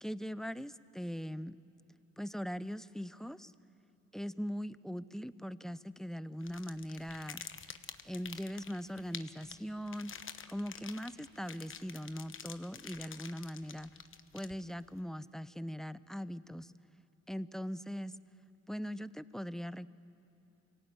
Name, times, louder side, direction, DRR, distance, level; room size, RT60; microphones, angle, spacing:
voice 1, 0.0-1.6 2.2-3.5 4.1-7.4 8.0-10.1 10.5-13.9 14.3-16.7 17.3-18.2 18.7-19.9, equal, ahead, 15 dB, 0.5 m, -40 dB
sound 1, 6.4-14.9, left 7 dB, 45° left, 1.1 m, -48 dB
24.5 x 17.5 x 8.9 m, 3.0 s
cardioid pair, 90°, 30 cm